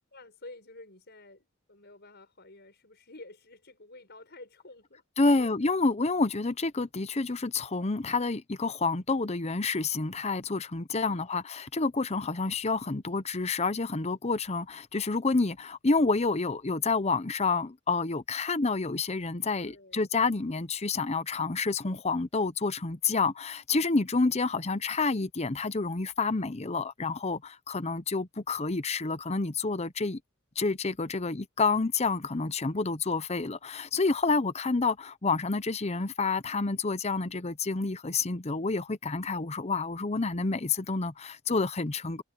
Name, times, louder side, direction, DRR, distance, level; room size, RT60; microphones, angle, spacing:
voice 1, 0.1-5.0 5.3-5.5 11.0-11.3 19.6-20.1, left 2 dB, 50° left, 6.4 m, -50 dB
voice 2, 5.2-30.2 30.6-42.2, left 3 dB, 30° left, 0.8 m, -29 dB
head